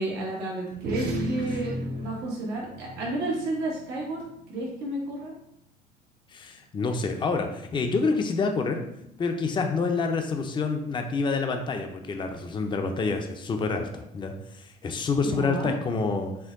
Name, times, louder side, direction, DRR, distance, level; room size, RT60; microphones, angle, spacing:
voice 1, 0.0-4.2 4.5-5.3 15.2-15.7, right 2 dB, 85° right, -3 dB, 1.3 m, -31 dB
sound 1, 0.7-5.5, right 1 dB, 65° right, 0.8 m, -35 dB
voice 2, 6.3-8.8 9.2-16.3, left 4 dB, 30° left, 5 dB, 0.5 m, -27 dB
4.4 x 2.2 x 3.6 m, 0.79 s
cardioid pair, 110°, 17 cm